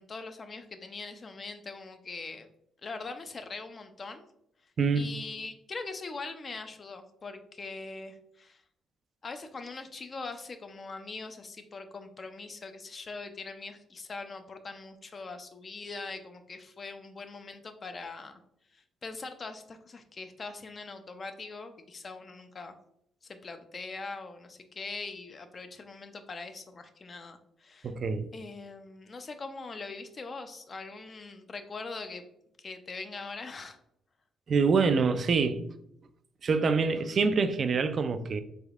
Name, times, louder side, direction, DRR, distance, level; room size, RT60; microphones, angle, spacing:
voice 1, 0.0-2.5 2.8-4.2 4.9-8.6 9.2-18.4 18.7-22.8 23.2-27.9 28.3-32.2 32.6-33.8, left 3 dB, 40° left, 0.4 m, -42 dB
voice 2, 4.8-5.1 27.8-28.3 34.5-35.6 36.4-38.4, right 4 dB, 50° right, 0.3 m, -25 dB
3.5 x 3.4 x 2.3 m
cardioid pair, 90°, 0 cm